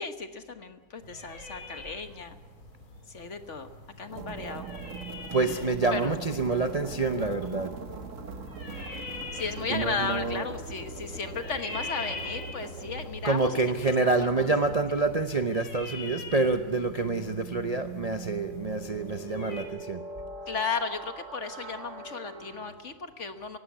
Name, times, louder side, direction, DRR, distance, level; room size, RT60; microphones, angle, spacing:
voice 1, 0.0-2.4 3.1-3.7 4.0-4.7 5.5-5.6 5.9-6.1 9.3-13.6 14.2-14.5 20.5-23.6, left 4 dB, 40° left, 8 dB, 1.3 m, -35 dB
sound 1, 1.0-19.6, left 2 dB, 85° left, 4.6 m, -44 dB
sound 2, 4.1-22.7, right 4 dB, 40° right, 1.7 m, -42 dB
voice 2, 5.3-7.7 9.7-10.5 13.2-20.0, right 3 dB, 60° right, 6 dB, 0.4 m, -27 dB
18.0 x 16.5 x 9.4 m, 1.3 s
omnidirectional pair, 2.2 m